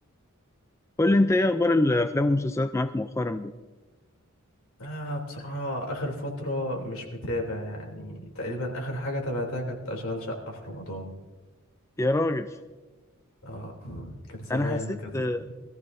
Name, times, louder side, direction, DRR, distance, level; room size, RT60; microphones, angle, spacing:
voice 1, 1.0-3.5 12.0-12.6 14.5-15.5, left 2 dB, 15° left, 9 dB, 0.4 m, -24 dB
voice 2, 4.8-11.1 13.4-15.5, left 1 dB, 75° left, 0 dB, 3.2 m, -33 dB
22.0 x 14.5 x 2.7 m, 1.2 s
head